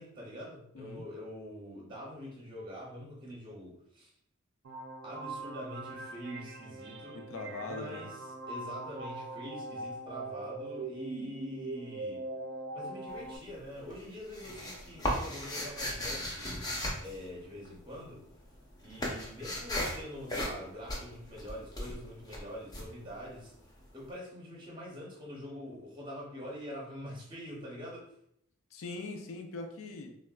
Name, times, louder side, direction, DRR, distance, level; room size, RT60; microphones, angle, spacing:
voice 1, 0.0-4.1 5.0-7.2 7.6-8.2 8.5-12.2 12.7-18.2 18.8-23.5 23.9-28.1, equal, 25° right, -3 dB, 0.6 m, -45 dB
sound 1, 4.6-13.4, right 2 dB, 60° right, 0.3 m, -41 dB
voice 2, 7.1-8.0 28.7-30.1, left 3 dB, 75° left, 4 dB, 0.4 m, -41 dB
sound 2, 13.1-13.6 13.9-18.0 18.2-23.8, left 1 dB, 20° left, 0.5 m, -36 dB
3.4 x 2.1 x 2.3 m, 0.70 s
head